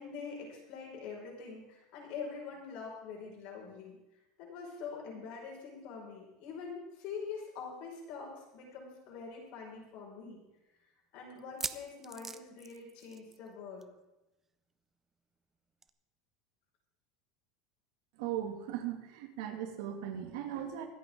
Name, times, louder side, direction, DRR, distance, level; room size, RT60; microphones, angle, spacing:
voice 1, 0.0-4.0 4.4-10.4 11.1-13.9, left 5 dB, 55° left, -2 dB, 5.6 m, -44 dB
sound 1, 8.7-8.8 9.1-9.2 9.8-9.9 11.4-13.5 13.8-14.0 14.3-14.4 15.8-15.9, right 4 dB, 15° right, 0.5 m, -42 dB
voice 2, 18.2-20.9, right 10 dB, 70° right, 4 dB, 2.3 m, -38 dB
25.0 x 8.7 x 3.8 m, 0.99 s
supercardioid pair, 155°, 2 cm